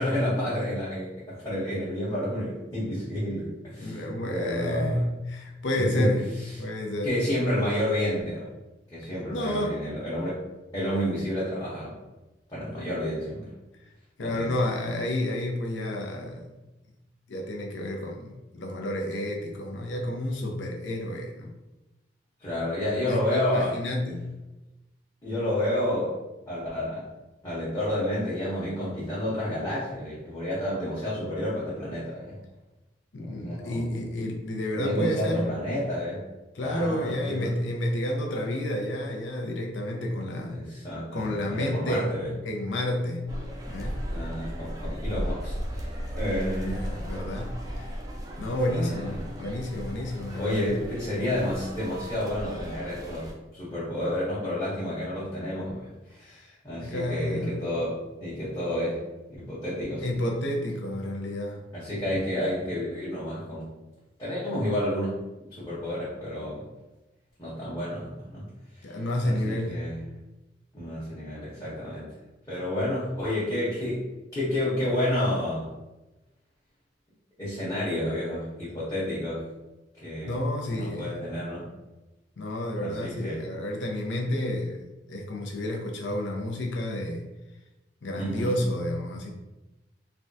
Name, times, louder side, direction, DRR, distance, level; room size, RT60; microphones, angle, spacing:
voice 1, 0.0-5.0 5.7-6.1 7.0-8.5 8.9-10.4 10.7-12.0 12.5-13.5 14.2-14.6 22.4-23.7 25.2-26.1 26.5-27.0 27.4-32.4 33.2-33.9 34.7-36.2 36.6-37.5 40.5-42.3 44.1-45.9 46.1-46.8 48.7-49.2 50.4-53.3 53.5-55.8 56.1-59.0 59.4-60.0 61.7-63.7 64.2-65.2 65.5-66.6 67.4-68.5 69.2-70.0 70.7-72.1 72.5-74.0 74.3-75.7 77.4-79.4 80.0-80.3 80.7-81.6 82.8-83.4 88.1-88.6, left 1 dB, 20° left, -10 dB, 0.9 m, -30 dB
voice 2, 3.8-6.3 6.6-7.1 9.3-10.0 14.2-16.5 17.3-21.5 23.0-24.3 33.1-35.5 36.5-40.6 41.1-42.1 42.4-43.2 43.7-44.0 46.6-47.9 48.4-50.8 56.2-56.5 56.8-57.6 60.0-61.6 68.8-69.9 80.2-81.1 82.4-87.3 88.0-89.3, left 1 dB, 90° left, 0 dB, 0.6 m, -30 dB
sound 1, 43.3-53.3, equal, 20° right, 0.4 m, -36 dB
3.4 x 2.2 x 2.6 m, 1.0 s
head